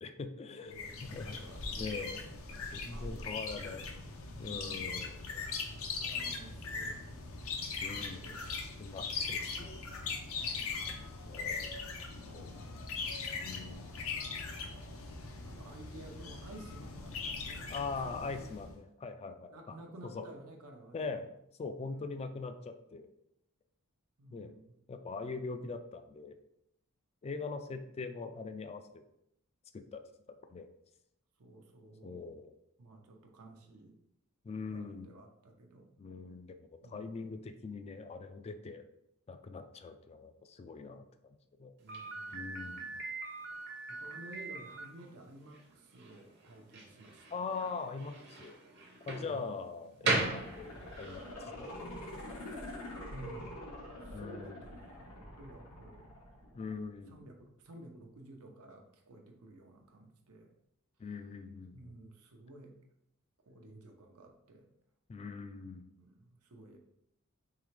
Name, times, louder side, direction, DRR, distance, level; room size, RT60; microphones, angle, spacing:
voice 1, 0.0-1.4 1.7-2.2 2.7-3.8 4.4-5.4 7.8-8.2 8.6-9.8 11.2-11.7 12.3-12.5 13.4-14.0 17.7-19.8 20.1-20.3 20.9-21.3 21.6-23.1 24.3-24.5 24.9-26.4 27.2-29.0 29.7-30.0 30.5-30.7 32.0-32.5 34.4-35.1 36.0-38.8 39.3-41.7 42.3-43.0 47.3-48.6 49.1-50.7 51.0-52.1 54.1-54.6 56.5-57.2 61.0-61.9 65.1-65.9, left 4 dB, 30° left, 8 dB, 0.3 m, -42 dB
voice 2, 0.6-2.1 2.4-3.3 3.6-4.9 5.9-7.0 7.8-8.7 10.3-11.0 12.2-13.0 15.4-17.7 18.0-18.5 19.5-21.2 21.8-22.2 24.2-24.8 31.4-32.3 32.8-34.0 34.7-35.9 36.8-37.4 41.8-42.5 43.9-47.4 49.2-49.6 53.1-53.7 54.0-56.1 56.3-56.5 57.1-60.5 61.7-62.8 63.5-64.7 66.0-66.8, right 2 dB, 85° right, 3 dB, 0.7 m, -53 dB
sound 1, 0.7-18.7, left 4 dB, 70° left, 0.6 m, -40 dB
Slam, 41.9-51.2, right 2 dB, 55° right, 0.8 m, -39 dB
sound 2, 50.0-57.0 57.4-57.5, left 1 dB, 90° left, 1.3 m, -46 dB
3.7 x 3.3 x 3.2 m, 0.79 s
head